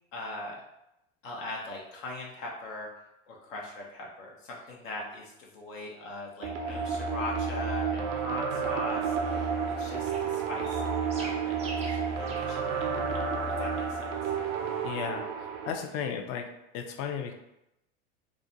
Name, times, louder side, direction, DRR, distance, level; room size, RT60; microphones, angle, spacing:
voice 1, 0.1-0.6 1.2-2.9 3.3-9.5 9.8-13.2 13.6-14.1, left 2 dB, 75° left, -2 dB, 0.7 m, -40 dB
sound 1, 6.4-15.7, right 5 dB, 70° right, 0.5 m, -31 dB
sound 2, 8.9-14.9, right 2 dB, 15° right, 0.4 m, -48 dB
voice 2, 14.8-16.4 16.7-17.3, left 7 dB, 40° left, 4 dB, 0.4 m, -34 dB
2.4 x 2.1 x 2.6 m, 0.86 s
hypercardioid pair, 90°, 39 cm